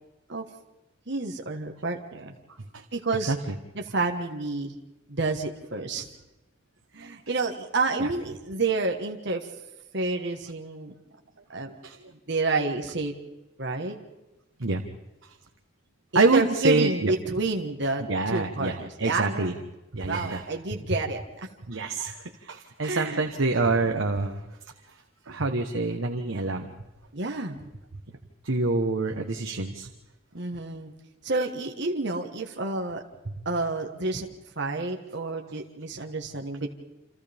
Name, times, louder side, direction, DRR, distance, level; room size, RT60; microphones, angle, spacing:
voice 1, 1.1-2.3 2.9-3.3 3.7-4.8 5.1-6.1 6.9-9.5 9.9-10.9 11.5-11.8 12.3-13.1 13.6-14.0 16.1-19.6 20.0-21.2 22.8-23.2 27.1-27.7 30.3-30.9 31.2-33.0 33.4-34.3 34.6-36.7, right 3 dB, 60° right, 2 dB, 1.6 m, -29 dB
voice 2, 11.7-12.1 14.6-14.8 15.2-15.3 16.1-17.1 18.1-19.5 19.9-20.4 21.7-24.4 25.3-26.7 28.4-29.9 33.3-33.4, right 3 dB, 75° right, 3 dB, 1.3 m, -26 dB
29.0 x 27.5 x 3.6 m, 1.0 s
head